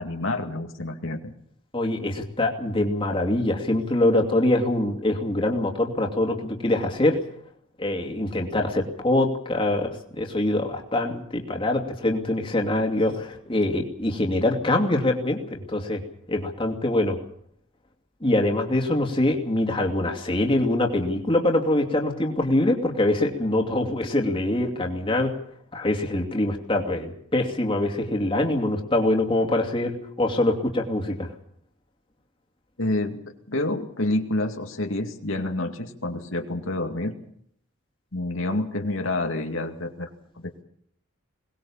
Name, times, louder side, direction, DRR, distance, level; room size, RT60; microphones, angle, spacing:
voice 1, 0.0-1.3 32.8-33.2 33.5-37.1 38.1-40.1 40.4-40.6, left 2 dB, 75° left, 4 dB, 2.3 m, -28 dB
voice 2, 1.7-7.2 7.8-16.0 16.3-17.2 18.2-25.3 25.7-31.3, left 1 dB, 25° left, 1 dB, 2.7 m, -24 dB
22.0 x 19.5 x 7.3 m, 0.67 s
head